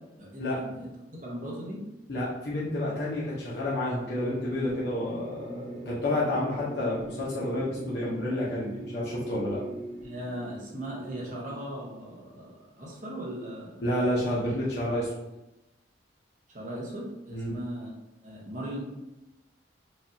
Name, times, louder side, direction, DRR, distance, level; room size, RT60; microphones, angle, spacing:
voice 1, 0.2-0.9 1.2-1.8 10.0-13.8 16.5-17.9 18.2-18.8, right 1 dB, 45° right, -4 dB, 1.1 m, -38 dB
voice 2, 2.1-9.6 13.8-15.1 17.3-17.6, left 1 dB, 60° left, -7 dB, 0.9 m, -30 dB
sound 1, 4.1-12.3, right 1 dB, 65° right, 1.4 m, -41 dB
4.8 x 2.6 x 2.8 m, 0.95 s
head